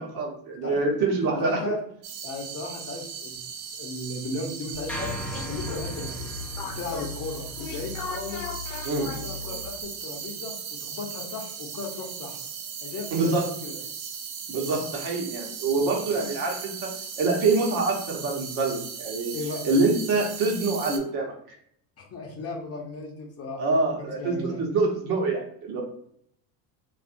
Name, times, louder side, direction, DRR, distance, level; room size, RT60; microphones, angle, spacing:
voice 1, 0.0-1.6 8.8-9.1 13.1-13.4 14.5-16.7 17.2-19.3 19.6-21.3 23.6-25.8, right 3 dB, 60° right, 0 dB, 1.1 m, -25 dB
voice 2, 0.6-1.8 2.2-3.4 3.8-5.1 5.5-6.2 6.6-8.4 9.2-12.4 12.8-13.8 16.2-16.3 19.3-19.6 22.0-23.6 24.0-24.6, left 3 dB, 35° left, 0 dB, 0.8 m, -36 dB
sound 1, 2.0-21.0, right 6 dB, 80° right, 0.6 m, -38 dB
sound 2, 4.7-9.8, left 5 dB, 65° left, 0.7 m, -37 dB
sound 3, 4.9-9.2, equal, 5° left, 0.4 m, -39 dB
2.6 x 2.5 x 2.5 m, 0.66 s
hypercardioid pair, 85°, 43 cm